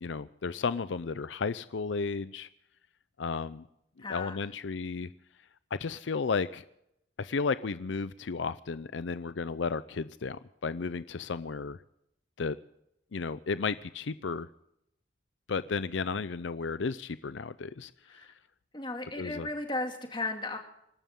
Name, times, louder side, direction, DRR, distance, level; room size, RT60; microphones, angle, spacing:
voice 1, 0.0-2.5 3.2-3.7 4.1-5.1 5.7-6.6 7.2-11.8 12.4-12.6 13.1-14.5 15.5-18.3 19.2-19.5, left 4 dB, 80° left, 15 dB, 0.5 m, -33 dB
voice 2, 4.0-4.5 18.1-18.3 18.7-20.6, left 2 dB, 25° left, 4 dB, 2.4 m, -35 dB
27.5 x 12.5 x 3.7 m, 0.79 s
head